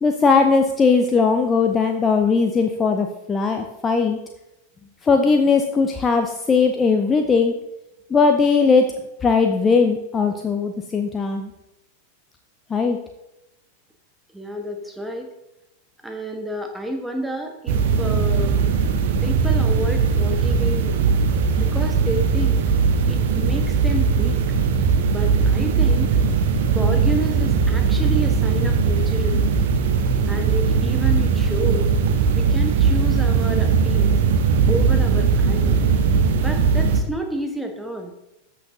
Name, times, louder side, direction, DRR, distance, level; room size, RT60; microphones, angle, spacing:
voice 1, 0.0-4.2 5.0-7.5 8.1-8.9 9.2-11.5 12.7-13.0, left 4 dB, 20° left, 5 dB, 0.6 m, -19 dB
voice 2, 14.3-15.3 16.0-18.6 19.2-21.1 21.6-22.7 23.0-24.4 25.1-26.2 26.7-29.5 30.3-31.9 32.3-34.2 34.7-35.8 36.4-38.1, right 1 dB, 5° right, 4 dB, 1.2 m, -30 dB
sound 1, 17.7-37.0, right 5 dB, 55° right, 0.9 m, -19 dB
13.5 x 6.1 x 2.8 m, 0.92 s
figure-of-eight pair, 90°, 0 cm